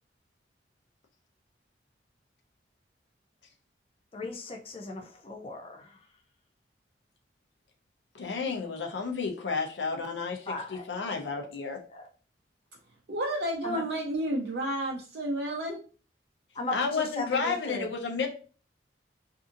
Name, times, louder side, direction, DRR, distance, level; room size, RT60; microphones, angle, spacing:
voice 1, 4.1-6.0 10.5-11.5 11.9-12.1 13.6-13.8 16.5-17.9, left 2 dB, 30° left, 2 dB, 0.4 m, -38 dB
voice 2, 8.1-10.4 10.9-11.8 16.7-18.3, left 4 dB, 85° left, 3 dB, 0.6 m, -31 dB
voice 3, 13.1-15.8, right 1 dB, 70° right, -2 dB, 0.5 m, -31 dB
2.7 x 2.6 x 2.4 m, 0.38 s
head